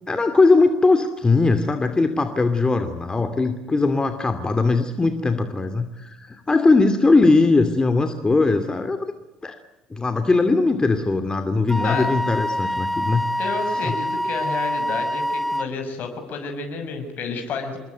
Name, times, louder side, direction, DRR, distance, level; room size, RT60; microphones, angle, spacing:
voice 1, 0.1-9.1 9.4-9.6 9.9-13.2 13.8-13.9, left 3 dB, 20° left, 8 dB, 2.6 m, -20 dB
Wind instrument woodwind instrument, 11.7-15.7, equal, ahead, 1.2 m, -25 dB
voice 2, 13.4-17.8, left 4 dB, 55° left, 5 dB, 6.1 m, -30 dB
26.5 x 22.0 x 9.3 m, 1.0 s
hypercardioid pair, 60°, 4 cm